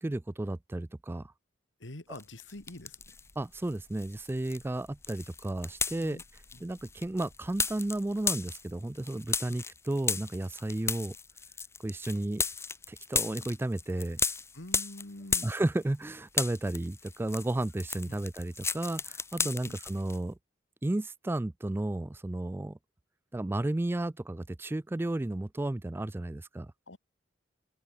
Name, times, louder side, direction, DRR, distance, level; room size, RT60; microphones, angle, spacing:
voice 1, 0.0-1.3 3.4-6.2 6.6-11.1 11.8-12.4 12.9-14.2 15.4-20.4 20.8-22.8 23.3-26.7, right 1 dB, 10° right, 0.3 m, -33 dB
voice 2, 1.8-3.2 6.0-6.2 6.5-6.6 14.5-15.5 18.1-18.2 19.4-19.8 26.9-27.0, left 1 dB, 75° left, 2.2 m, -46 dB
sound 1, 2.2-3.3 3.6-16.0 16.3-20.2, left 4 dB, 15° left, 0.9 m, -35 dB
sound 2, 2.5-9.2, left 1 dB, 50° left, 2.1 m, -62 dB
head